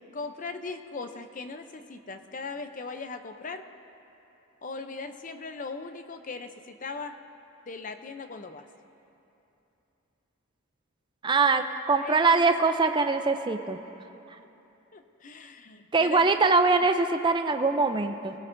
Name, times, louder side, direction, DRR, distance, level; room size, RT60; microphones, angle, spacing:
voice 1, 0.1-3.7 4.6-7.2 7.7-8.7 11.9-12.5 14.9-16.4, left 4 dB, 35° left, 8 dB, 0.5 m, -39 dB
voice 2, 11.2-13.8 15.9-18.3, right 4 dB, 20° right, 7 dB, 0.4 m, -23 dB
21.0 x 17.0 x 2.6 m, 2.9 s
head